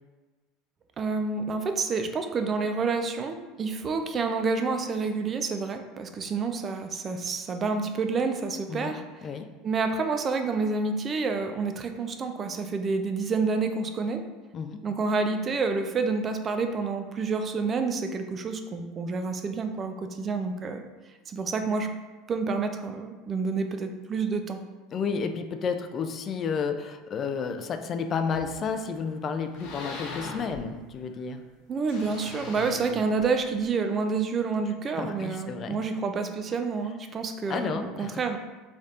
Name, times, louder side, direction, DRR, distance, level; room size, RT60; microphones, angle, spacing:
voice 1, 1.0-9.3 9.6-14.2 14.8-20.8 21.3-21.9 22.3-24.6 31.7-38.4, right 4 dB, 30° right, 6 dB, 0.4 m, -28 dB
voice 2, 24.9-31.4 34.9-35.8 37.5-38.1, left 5 dB, 40° left, 7 dB, 0.3 m, -31 dB
sound 1, 28.3-28.9 29.3-31.2 31.8-33.7, left 3 dB, 80° left, 0.7 m, -40 dB
4.1 x 3.3 x 2.5 m, 1.3 s
supercardioid pair, 105°, 0 cm